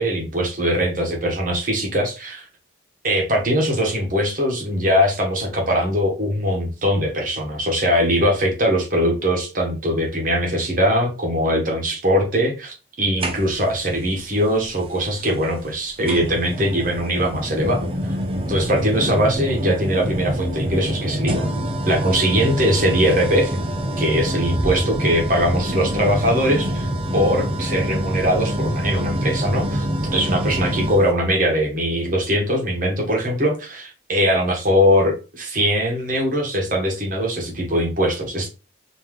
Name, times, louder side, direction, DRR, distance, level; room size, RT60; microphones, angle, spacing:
voice 1, 0.0-2.5 3.0-17.9 18.5-21.5 21.9-23.6 24.0-29.8 30.1-38.5, equal, 45° right, 1 dB, 1.3 m, -21 dB
sound 1, 13.2-13.8 15.2-15.3 16.1-31.1, equal, 30° right, 0.6 m, -25 dB
3.6 x 3.1 x 3.1 m, 0.32 s
head